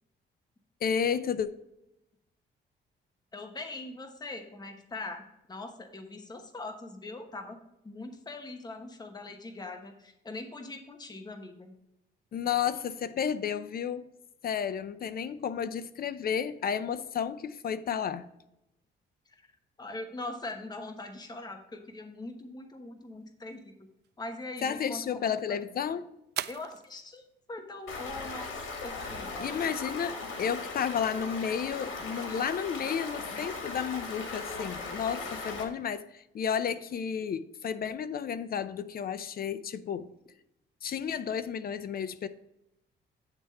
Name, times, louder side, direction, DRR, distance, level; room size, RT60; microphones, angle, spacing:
voice 1, 0.8-1.5 12.3-14.1 14.4-18.3 24.6-26.1 29.4-40.1 40.8-42.3, left 7 dB, 50° left, 0.6 m, -32 dB
voice 2, 3.3-5.2 5.5-7.6 7.8-11.7 19.3-19.5 19.8-23.7 24.2-25.6 26.5-27.2 27.5-29.6, left 2 dB, 20° left, 1.0 m, -42 dB
sound 1, 23.0-32.0, right 12 dB, 60° right, 0.4 m, -47 dB
Stream, 27.9-35.6, left 3 dB, 80° left, 1.7 m, -38 dB
9.0 x 3.5 x 5.4 m
cardioid pair, 90°, 20 cm